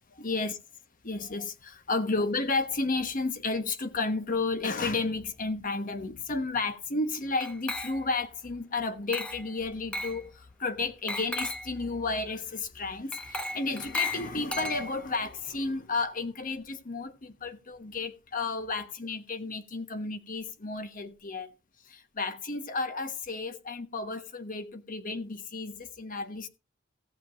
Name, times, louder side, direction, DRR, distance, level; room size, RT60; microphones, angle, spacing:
voice 1, 0.1-0.5 1.0-21.5 21.9-26.5, left 3 dB, 45° left, 1.2 m, -32 dB
Glass, 7.4-8.3 9.1-9.5 9.9-10.2 11.1-11.7 13.1-15.2, left 2 dB, 5° left, 1.0 m, -35 dB
16.5 x 7.0 x 3.9 m
head